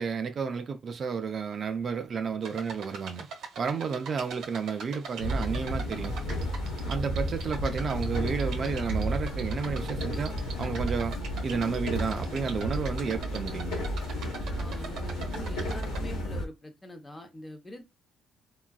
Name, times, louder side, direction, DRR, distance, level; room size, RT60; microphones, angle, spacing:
voice 1, 0.0-3.3 3.6-6.1 6.9-11.1 11.4-13.9, right 5 dB, 45° right, 0.4 m, -31 dB
sound 1, 2.4-16.0, right 5 dB, 70° right, 1.0 m, -43 dB
voice 2, 3.7-4.2 14.6-17.8, left 1 dB, 20° left, 0.8 m, -45 dB
sound 2, 5.2-16.5, equal, 90° left, 1.1 m, -32 dB
3.7 x 2.3 x 2.3 m
cardioid pair, 105°, 0 cm